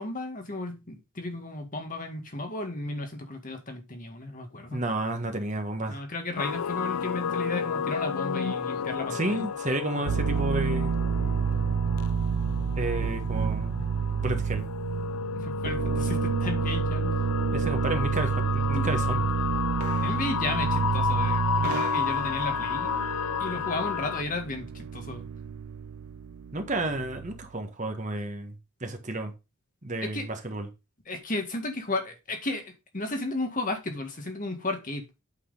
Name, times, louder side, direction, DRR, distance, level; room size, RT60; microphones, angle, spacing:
voice 1, 0.0-4.8 5.9-9.5 15.3-17.2 18.7-18.9 20.0-22.9 23.4-25.2 30.0-30.3 31.0-35.1, left 2 dB, 35° left, 4 dB, 1.8 m, -34 dB
voice 2, 4.7-6.0 9.1-11.0 12.7-13.8 14.2-14.7 17.5-19.2 26.5-28.5 28.8-29.3 29.8-30.7, right 2 dB, 35° right, 5 dB, 1.5 m, -31 dB
sound 1, 6.4-24.2, left 7 dB, 80° left, 0.4 m, -32 dB
sound 2, 10.1-27.5, right 7 dB, 75° right, 0.4 m, -29 dB
8.6 x 6.3 x 3.8 m, 0.25 s
head